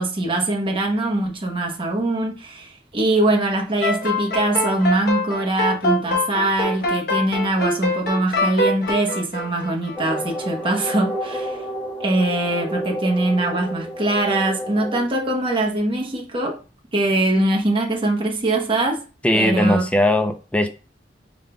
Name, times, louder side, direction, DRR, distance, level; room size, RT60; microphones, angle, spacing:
voice 1, 0.0-11.6 12.0-16.6 16.9-19.0 19.3-19.9, right 2 dB, 30° right, 1.0 m, -22 dB
sound 1, 3.8-10.4, left 1 dB, 60° left, 1.1 m, -24 dB
sound 2, 9.9-15.0, equal, 10° right, 1.6 m, -30 dB
voice 2, 19.2-20.7, left 1 dB, 10° left, 0.5 m, -19 dB
5.0 x 3.7 x 2.3 m
head